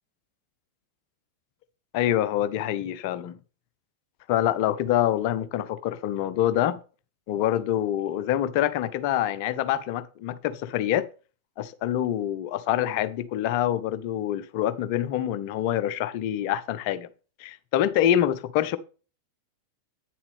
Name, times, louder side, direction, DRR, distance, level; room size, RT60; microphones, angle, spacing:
voice 1, 1.9-3.4 4.3-6.8 7.3-11.1 11.6-17.1 17.4-18.8, left 11 dB, 45° left, 0.7 m, -26 dB
9.4 x 7.0 x 3.4 m
figure-of-eight pair, 90°, 0 cm